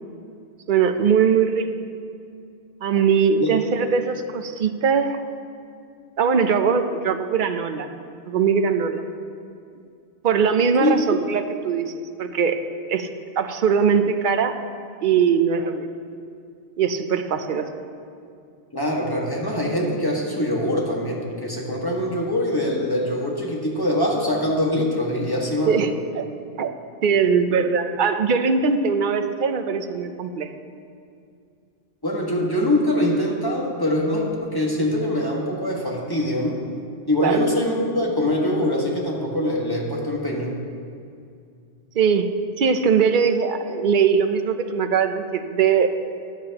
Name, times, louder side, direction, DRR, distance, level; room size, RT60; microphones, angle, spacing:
voice 1, 0.7-1.7 2.8-5.2 6.2-7.9 8.3-9.1 10.2-12.6 12.9-13.1 13.4-14.5 15.0-15.9 16.8-17.7 25.7-26.3 26.6-26.7 27.0-30.5 37.2-37.4 42.0-45.9, right 6 dB, 55° right, 8 dB, 0.7 m, -21 dB
voice 2, 18.7-25.8 32.0-36.6 37.1-40.6, left 1 dB, 20° left, -2 dB, 1.5 m, -23 dB
13.0 x 10.5 x 2.9 m, 2.3 s
omnidirectional pair, 1.1 m